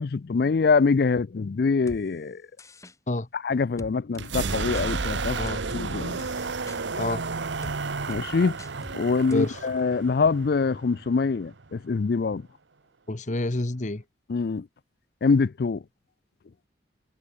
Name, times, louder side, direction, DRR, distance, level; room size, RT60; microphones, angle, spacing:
voice 1, 0.0-2.4 3.3-5.4 5.7-6.4 6.7-6.8 8.1-8.6 8.9-12.5 14.3-14.7 15.2-15.8, left 4 dB, 55° left, 0.4 m, -24 dB
sound 1, 1.9-2.0 2.6-2.9 3.8-4.3 4.7-4.9 5.5-5.9 6.2-6.8 7.6-7.8 8.1-8.2 8.6-9.0 9.3-9.4, left 1 dB, 15° left, 2.2 m, -42 dB
sound 2, 4.1-11.9, right 4 dB, 75° right, 1.0 m, -32 dB
voice 2, 13.1-14.0, left 2 dB, 40° left, 1.0 m, -28 dB
head